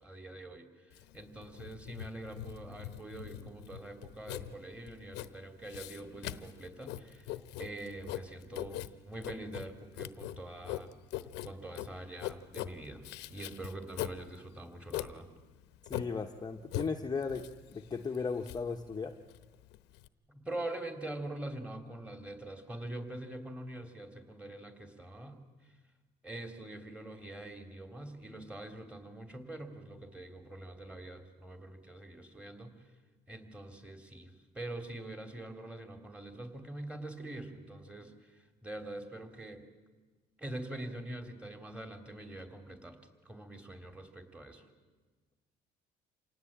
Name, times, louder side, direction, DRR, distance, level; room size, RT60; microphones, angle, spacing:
voice 1, 0.0-10.9 11.4-13.0 13.3-15.3 20.3-25.7 26.2-32.8 33.3-39.6 40.4-43.0 43.2-44.7, right 1 dB, 5° right, 6 dB, 3.3 m, -44 dB
Writing, 0.9-20.1, left 14 dB, 90° left, 1.0 m, -42 dB
voice 2, 15.9-19.2, left 5 dB, 25° left, 3 dB, 1.1 m, -36 dB
27.0 x 18.5 x 8.8 m, 1.4 s
cardioid pair, 110°, 17 cm